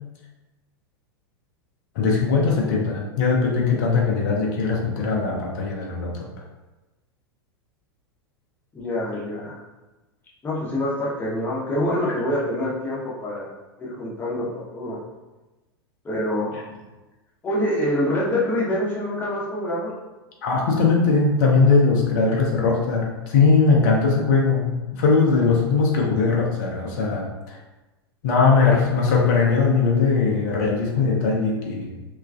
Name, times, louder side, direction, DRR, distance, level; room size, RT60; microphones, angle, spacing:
voice 1, 1.9-6.3 20.4-27.6 28.2-32.0, left 4 dB, 50° left, -1 dB, 0.6 m, -20 dB
voice 2, 8.7-9.6 10.4-13.5 13.8-15.0 16.0-16.7 17.4-19.9, left 1 dB, 15° left, -6 dB, 0.8 m, -26 dB
3.0 x 2.3 x 2.4 m, 1.1 s
figure-of-eight pair, 90°, 13 cm